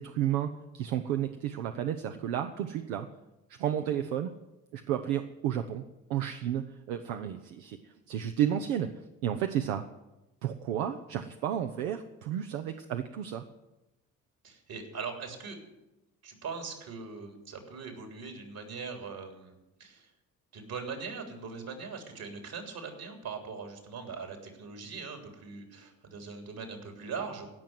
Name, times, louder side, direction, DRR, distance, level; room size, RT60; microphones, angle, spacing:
voice 1, 0.0-3.1 3.6-4.3 4.7-5.8 6.1-8.9 9.2-9.8 10.4-13.4, right 10 dB, 80° right, 7 dB, 0.8 m, -32 dB
voice 2, 14.4-15.6 16.2-20.1 20.5-27.5, right 5 dB, 60° right, 4 dB, 3.5 m, -41 dB
16.0 x 6.1 x 9.4 m, 0.98 s
hypercardioid pair, 50°, 41 cm